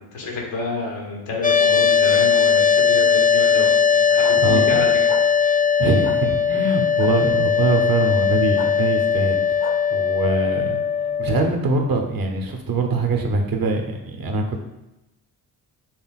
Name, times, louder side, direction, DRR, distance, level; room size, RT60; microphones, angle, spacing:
voice 1, 0.1-4.9, left 2 dB, 80° left, -2 dB, 1.3 m, -29 dB
sound 1, 1.4-11.5, left 7 dB, 20° left, 0.4 m, -19 dB
sound 2, 4.2-4.4 5.1-5.2 6.0-6.2 7.0-7.1 8.5-8.7 9.6-9.7, left 6 dB, 50° left, 0.9 m, -32 dB
voice 2, 4.4-4.8 5.8-9.4 9.9-14.6, right 3 dB, 50° right, 3 dB, 1.0 m, -23 dB
6.3 x 3.3 x 2.4 m, 0.94 s
hypercardioid pair, 40°, 46 cm